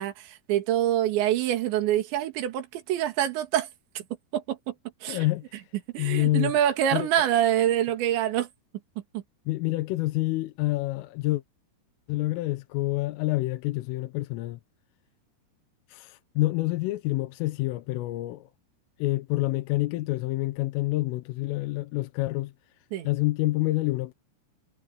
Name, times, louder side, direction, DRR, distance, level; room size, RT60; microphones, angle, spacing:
voice 1, 0.0-3.7 4.3-4.7 5.0-5.3 5.9-8.5 9.1-9.2 22.9-23.1, right 11 dB, 65° right, 4.2 m, -25 dB
voice 2, 5.1-5.6 6.0-6.5 6.9-7.1 9.5-11.4 12.1-14.6 15.9-18.5 19.0-22.5 23.0-24.1, left 19 dB, 80° left, 3.4 m, -27 dB
omnidirectional pair, 5.9 m